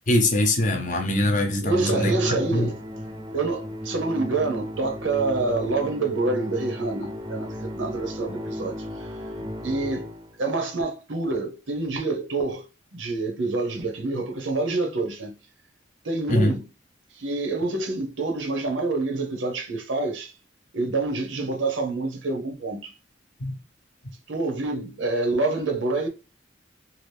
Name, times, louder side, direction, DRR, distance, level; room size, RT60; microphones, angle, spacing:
voice 1, 0.1-2.1 2.5-2.7 9.4-9.5 16.3-16.5 23.4-23.5, left 1 dB, 40° left, 0.6 m, -22 dB
voice 2, 1.6-2.8 3.3-9.2 9.6-10.1 10.4-12.6 12.9-15.3 16.0-16.7 17.1-20.3 20.7-22.9 24.3-26.1, right 3 dB, 90° right, 0.9 m, -27 dB
Musical instrument, 1.9-10.4, equal, 25° right, 0.5 m, -34 dB
2.9 x 2.5 x 3.3 m
head